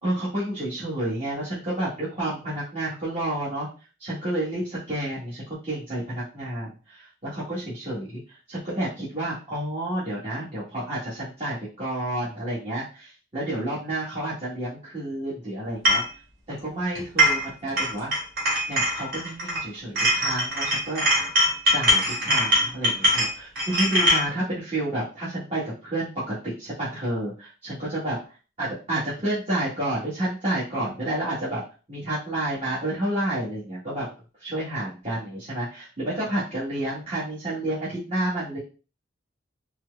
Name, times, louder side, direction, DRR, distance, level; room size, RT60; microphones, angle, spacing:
voice 1, 0.0-3.7 4.0-16.0 16.5-18.1 18.7-21.0 21.7-28.2 28.6-31.6 31.9-34.1 34.4-38.6, right 1 dB, 35° right, -10 dB, 1.5 m, -30 dB
sound 1, 15.9-16.1 17.0-17.5 17.8-19.6 20.0-24.3, equal, 50° right, 2.0 m, -22 dB
4.5 x 2.1 x 3.3 m, 0.35 s
head